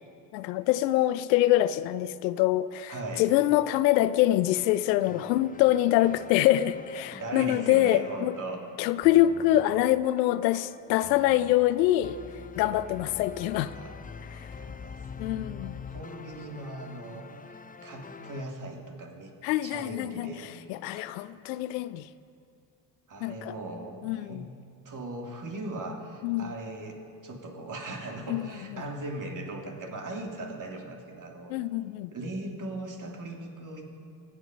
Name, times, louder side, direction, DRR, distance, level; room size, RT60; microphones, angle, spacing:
voice 1, 0.3-8.3 8.8-12.2 12.6-13.7 14.3-14.5 15.2-15.8 19.4-20.3 20.7-22.1 23.2-23.5 24.0-24.5 26.2-26.5 28.3-28.4 31.5-32.1, left 14 dB, 80° left, 15 dB, 0.6 m, -25 dB
voice 2, 2.9-3.3 7.1-8.6 13.7-14.0 14.3-19.3 19.6-21.2 23.1-24.5 24.8-31.5 32.1-33.9, right 2 dB, 40° right, 1 dB, 3.2 m, -39 dB
sound 1, 4.5-18.4, left 5 dB, 15° left, 0.7 m, -45 dB
24.0 x 9.0 x 5.4 m, 2.5 s
hypercardioid pair, 65°, 50 cm